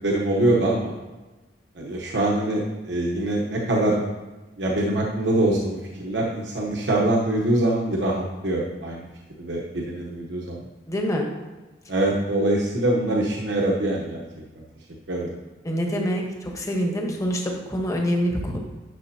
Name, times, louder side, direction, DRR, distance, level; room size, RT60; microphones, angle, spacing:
voice 1, 0.0-0.9 1.7-4.0 4.6-9.1 9.4-10.6 11.9-14.6 15.1-15.3, right 1 dB, 80° right, -2 dB, 1.0 m, -24 dB
voice 2, 10.9-11.3 15.6-18.6, equal, 20° left, 1 dB, 1.1 m, -25 dB
10.5 x 6.6 x 2.8 m, 1.2 s
head